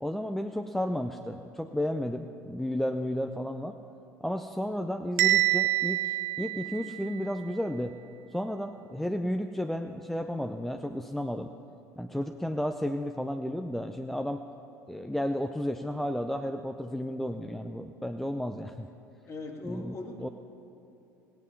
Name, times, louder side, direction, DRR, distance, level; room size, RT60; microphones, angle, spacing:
voice 1, 0.0-3.8 4.2-8.0 8.3-11.5 12.0-14.4 14.9-18.9 19.6-20.3, equal, 5° left, 6 dB, 0.5 m, -33 dB
Bell, 5.2-7.2, right 16 dB, 65° right, 0.8 m, -26 dB
voice 2, 19.3-20.3, left 2 dB, 30° left, 2 dB, 2.1 m, -40 dB
18.0 x 9.3 x 5.6 m, 2.9 s
figure-of-eight pair, 70°, 9 cm